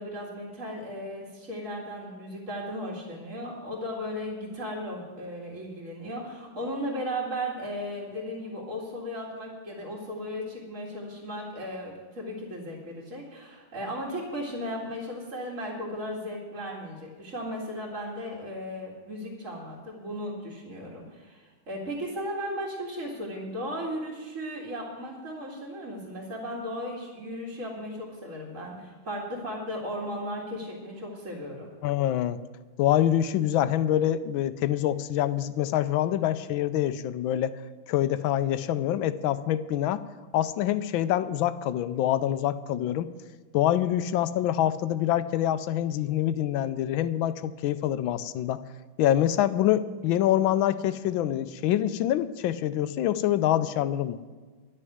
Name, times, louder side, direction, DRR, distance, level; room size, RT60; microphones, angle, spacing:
voice 1, 0.0-31.7, equal, 40° right, -5 dB, 2.6 m, -36 dB
voice 2, 31.8-32.4 32.8-37.5 37.9-40.0 40.3-43.1 43.5-48.6 49.0-54.2, left 12 dB, 80° left, 13 dB, 1.4 m, -25 dB
12.0 x 6.6 x 9.2 m, 1.4 s
omnidirectional pair, 2.2 m